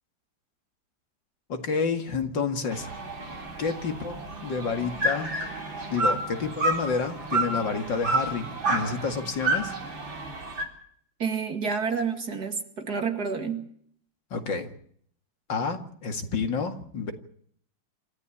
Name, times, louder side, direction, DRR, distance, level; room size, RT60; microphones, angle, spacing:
voice 1, 1.5-3.0 3.6-5.3 5.9-9.7 14.3-14.7 15.5-17.1, left 5 dB, 70° left, 6 dB, 2.8 m, -29 dB
sound 1, 2.7-10.6, right 2 dB, 85° right, 4.8 m, -30 dB
voice 2, 11.2-13.7, right 5 dB, 55° right, 6 dB, 2.8 m, -29 dB
27.0 x 14.5 x 8.6 m, 0.63 s
omnidirectional pair, 2.0 m